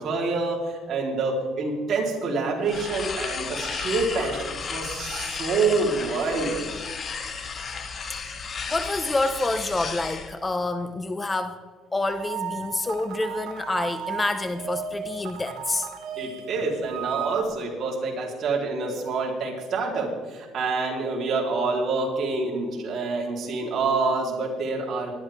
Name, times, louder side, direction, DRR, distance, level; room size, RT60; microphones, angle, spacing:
voice 1, 0.0-6.7 16.2-25.1, right 3 dB, 50° right, -1 dB, 4.0 m, -27 dB
sound 1, 2.7-10.3, left 5 dB, 40° left, 1.6 m, -33 dB
voice 2, 8.7-11.6 11.9-15.9, left 2 dB, 20° left, 10 dB, 0.8 m, -27 dB
sound 2, 12.1-17.4, right 7 dB, 70° right, 1.3 m, -35 dB
19.5 x 12.0 x 3.7 m, 1.4 s
cardioid pair, 105°, 0 cm